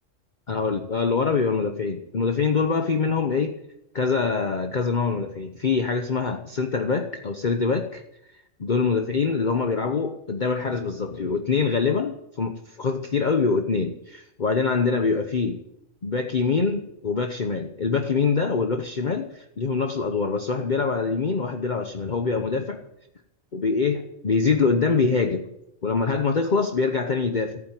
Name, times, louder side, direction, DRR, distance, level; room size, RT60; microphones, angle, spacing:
voice 1, 0.5-3.6 3.9-8.0 8.6-15.6 16.0-22.8 23.5-25.5 25.8-27.6, left 4 dB, 40° left, 5 dB, 1.1 m, -24 dB
15.0 x 9.5 x 9.2 m, 0.82 s
omnidirectional pair, 1.4 m